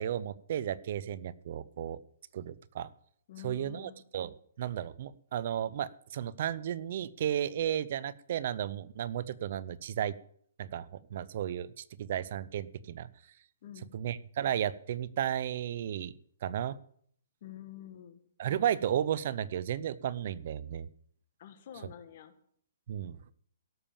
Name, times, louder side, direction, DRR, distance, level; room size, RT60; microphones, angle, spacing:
voice 1, 0.0-2.0 2.3-2.9 3.4-4.3 4.6-10.2 10.6-13.1 13.9-16.1 16.4-16.8 18.4-20.9 22.9-23.2, right 10 dB, 45° right, 18 dB, 0.6 m, -34 dB
voice 2, 3.3-4.0 13.6-13.9 17.4-18.2 21.4-22.3, left 10 dB, 45° left, 9 dB, 1.7 m, -48 dB
17.0 x 7.1 x 7.1 m, 0.62 s
hypercardioid pair, 165°, 0 cm